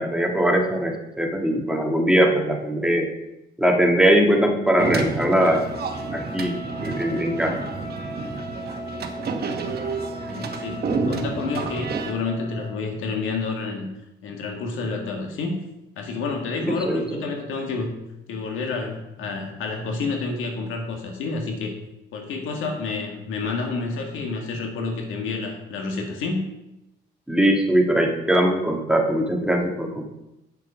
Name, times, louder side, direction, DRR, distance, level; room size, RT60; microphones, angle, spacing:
voice 1, 0.0-3.1 3.6-5.7 6.1-6.5 6.8-7.5 16.6-17.2 27.3-30.1, right 1 dB, 5° right, 1 dB, 1.6 m, -21 dB
sound 1, 4.8-12.1, right 4 dB, 55° right, 1.1 m, -29 dB
Wind instrument woodwind instrument, 5.2-12.9, equal, 35° left, 3.1 m, -39 dB
voice 2, 10.2-13.9 14.2-15.6 16.0-17.9 18.3-21.7 22.1-26.4, left 4 dB, 90° left, 2 dB, 1.8 m, -29 dB
8.1 x 7.0 x 5.2 m, 0.91 s
cardioid pair, 90°, 20 cm